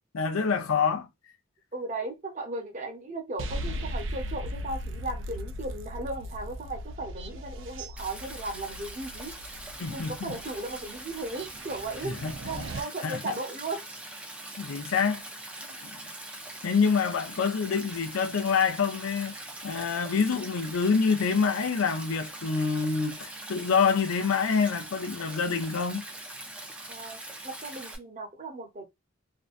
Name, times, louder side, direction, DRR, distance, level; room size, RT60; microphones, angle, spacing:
voice 1, 0.1-1.1 9.8-10.4 12.0-12.6 13.0-13.3 14.6-15.2 15.8-16.0 16.6-19.3 19.6-26.0, left 5 dB, 90° left, 0.5 m, -26 dB
voice 2, 1.7-9.4 9.9-12.2 12.4-13.8 26.9-28.9, right 2 dB, 35° right, 0.8 m, -36 dB
sound 1, 3.4-12.8, equal, 65° right, 0.4 m, -38 dB
Stream, 8.0-28.0, right 1 dB, 5° right, 0.4 m, -42 dB
2.6 x 2.2 x 2.4 m
head